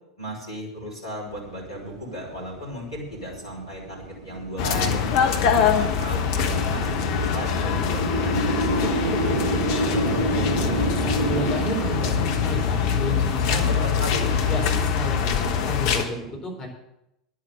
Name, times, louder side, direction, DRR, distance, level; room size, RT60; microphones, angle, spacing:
voice 1, 0.2-5.1 5.5-10.4 13.5-14.4, equal, 80° left, -4 dB, 3.7 m, -36 dB
sound 1, 1.3-14.8, right 2 dB, 60° right, 1.4 m, -30 dB
sound 2, 4.6-16.0, left 7 dB, 55° left, 1.3 m, -24 dB
voice 2, 10.9-13.7 14.5-16.7, equal, 30° left, 0 dB, 4.3 m, -31 dB
10.5 x 8.4 x 7.7 m, 0.85 s
figure-of-eight pair, 80°, 3 cm